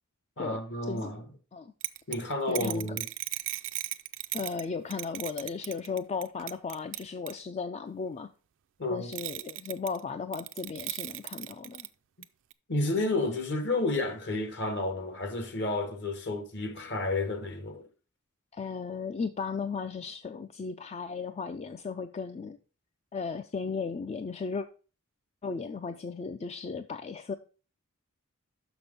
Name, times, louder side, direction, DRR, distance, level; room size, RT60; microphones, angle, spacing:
voice 1, 0.4-1.2 2.1-3.1 8.8-9.1 12.7-17.9, left 2 dB, 55° left, 1.3 m, -31 dB
sound 1, 1.8-4.7 4.9-7.4 9.1-10.0 10.3-11.9 12.2-12.3 12.5-12.6, right 18 dB, 60° right, 0.4 m, -36 dB
voice 2, 2.5-3.0 4.3-8.3 8.9-11.9 18.5-22.6 23.1-24.7 25.4-27.3, left 5 dB, 30° left, 0.3 m, -35 dB
6.1 x 6.0 x 5.2 m
head